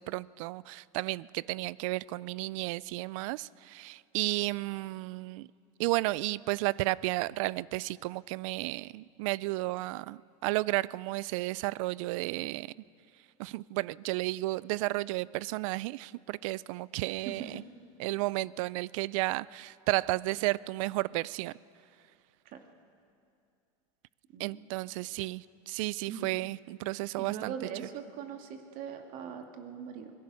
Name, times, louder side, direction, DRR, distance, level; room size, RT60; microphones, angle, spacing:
voice 1, 0.0-5.5 5.8-12.7 13.4-17.6 18.0-21.5 24.4-27.5, right 20 dB, 70° right, 22 dB, 0.4 m, -33 dB
voice 2, 17.2-17.6 22.5-22.6 24.3-24.6 26.1-26.3 27.2-30.1, right 7 dB, 50° right, 4 dB, 2.3 m, -41 dB
24.5 x 18.0 x 6.3 m, 2.4 s
supercardioid pair, 125°, 18 cm